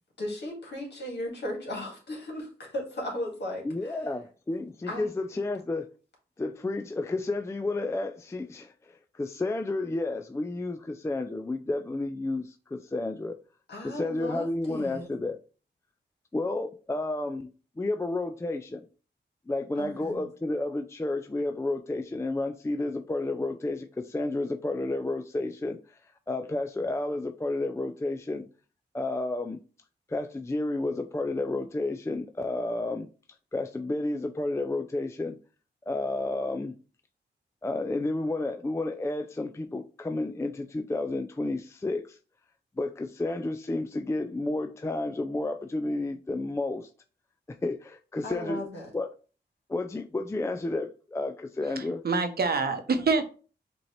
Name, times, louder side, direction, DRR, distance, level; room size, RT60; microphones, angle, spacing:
voice 1, 0.2-4.0 4.9-5.1 13.7-15.1 19.8-20.2 48.2-48.9, left 1 dB, 65° left, 0 dB, 2.0 m, -36 dB
voice 2, 3.6-5.9 6.4-13.4 13.8-15.4 16.3-17.5 17.8-18.8 19.5-26.0 26.3-28.5 28.9-29.6 30.1-33.1 33.5-35.4 35.9-36.7 37.6-42.2 42.8-46.9 47.5-48.6 48.9-49.1 49.7-52.0, left 2 dB, 15° left, 7 dB, 0.4 m, -31 dB
voice 3, 51.6-53.3, right 4 dB, 60° right, 8 dB, 0.8 m, -26 dB
5.2 x 2.9 x 3.1 m, 0.37 s
cardioid pair, 55°, 19 cm